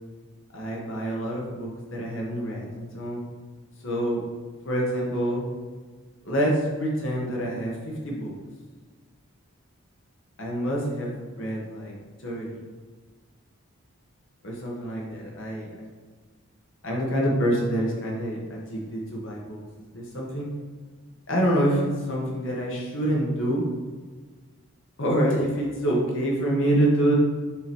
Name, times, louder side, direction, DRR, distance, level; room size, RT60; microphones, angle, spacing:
voice 1, 0.5-3.2 3.8-4.2 4.6-5.4 6.2-8.3 10.4-11.9 12.2-12.6 14.4-15.9 16.8-19.6 19.9-20.5 21.3-23.6 25.0-27.1, right 1 dB, 65° left, -3 dB, 1.3 m, -26 dB
7.5 x 3.1 x 4.3 m, 1.5 s
head